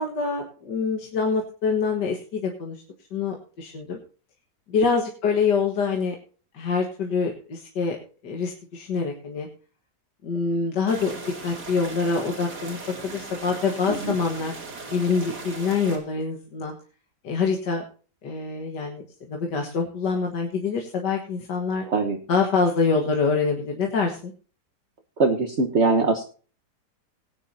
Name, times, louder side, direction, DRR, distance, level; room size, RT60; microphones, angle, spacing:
voice 1, 0.0-2.8 3.1-4.0 4.7-6.2 6.5-8.0 8.2-9.5 10.2-11.1 11.4-12.8 13.0-14.5 14.9-16.7 17.2-17.8 18.2-21.9 22.3-24.3, left 5 dB, 70° left, 2 dB, 2.2 m, -25 dB
sound 1, 10.9-16.0, right 3 dB, 65° right, 3.3 m, -38 dB
voice 2, 21.9-22.2 25.2-26.2, right 3 dB, 45° right, 3 dB, 1.4 m, -22 dB
18.5 x 9.7 x 2.7 m, 0.38 s
omnidirectional pair, 1.9 m